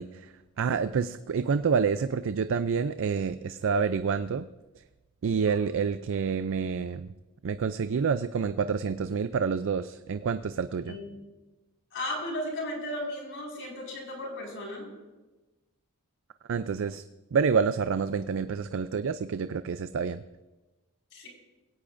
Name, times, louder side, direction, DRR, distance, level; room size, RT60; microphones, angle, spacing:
voice 1, 0.0-4.5 5.2-7.1 7.4-11.0 16.5-17.0 17.3-20.2, right 6 dB, 60° right, 12 dB, 0.4 m, -28 dB
voice 2, 10.8-11.1 11.9-14.9 21.1-21.3, left 1 dB, 60° left, -1 dB, 5.2 m, -35 dB
22.0 x 17.0 x 2.6 m, 1.1 s
head